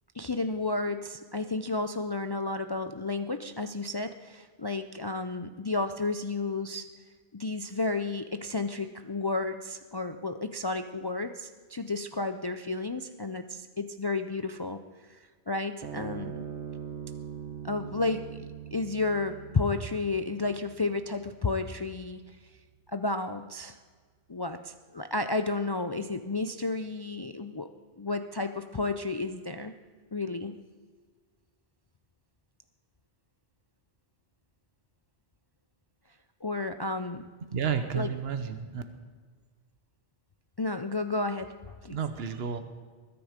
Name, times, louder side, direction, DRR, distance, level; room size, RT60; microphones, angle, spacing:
voice 1, 0.1-6.9 7.3-14.8 15.1-16.4 17.6-22.2 22.9-23.8 24.3-27.7 28.0-29.7 30.1-30.6 36.4-37.3 37.9-38.1 40.6-42.0, left 3 dB, 35° left, 8 dB, 0.3 m, -32 dB
sound 1, 15.8-22.5, right 8 dB, 85° right, 1.2 m, -42 dB
voice 2, 37.5-38.8 41.9-42.6, right 7 dB, 65° right, 9 dB, 1.2 m, -31 dB
21.0 x 9.9 x 5.1 m, 1.5 s
omnidirectional pair, 1.1 m